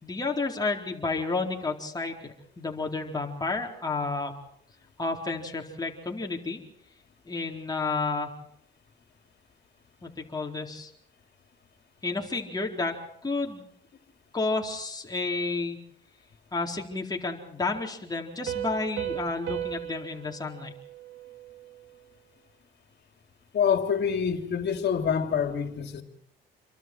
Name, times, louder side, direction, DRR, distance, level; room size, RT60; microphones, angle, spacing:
voice 1, 0.0-4.3 5.0-6.6 7.3-8.3 10.0-10.9 12.0-12.9 13.2-13.6 14.3-15.8 16.5-20.7, left 3 dB, 20° left, 0 dB, 4.2 m, -31 dB
Piano, 18.5-21.9, right 11 dB, 80° right, 2.6 m, -36 dB
voice 2, 23.5-26.0, left 7 dB, 60° left, 6 dB, 3.2 m, -26 dB
28.0 x 23.5 x 4.7 m, 0.68 s
cardioid pair, 90°, 20 cm